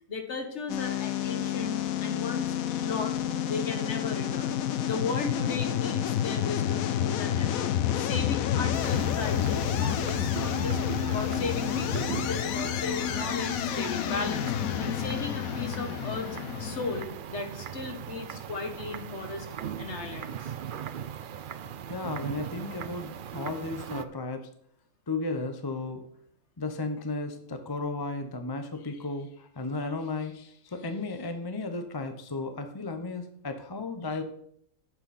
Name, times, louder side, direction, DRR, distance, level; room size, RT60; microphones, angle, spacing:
voice 1, 0.1-2.5 2.8-3.2 3.5-16.3 16.6-19.5 19.8-20.5, left 3 dB, 55° left, 5 dB, 1.6 m, -36 dB
sound 1, 0.7-17.0, left 10 dB, 85° left, 1.1 m, -29 dB
sound 2, 8.7-24.1, right 9 dB, 60° right, 0.5 m, -39 dB
voice 2, 21.9-24.5 25.1-26.0 26.6-34.2, left 3 dB, 20° left, 7 dB, 0.7 m, -34 dB
11.5 x 7.4 x 4.2 m, 0.68 s
omnidirectional pair, 1.4 m